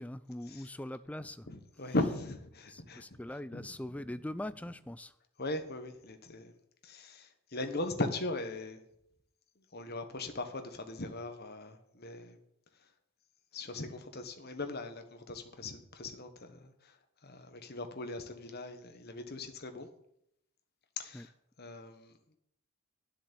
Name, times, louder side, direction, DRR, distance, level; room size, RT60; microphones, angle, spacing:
voice 1, 0.0-1.5 2.7-5.1 21.1-21.3, left 1 dB, 5° left, 0.3 m, -42 dB
voice 2, 1.5-3.0 3.5-3.8 4.6-4.7 5.4-6.5 6.8-8.8 9.7-12.4 13.5-16.9 17.2-19.9 21.0-21.3 21.6-22.1, left 2 dB, 45° left, 1.3 m, -39 dB
10.5 x 7.3 x 6.9 m
head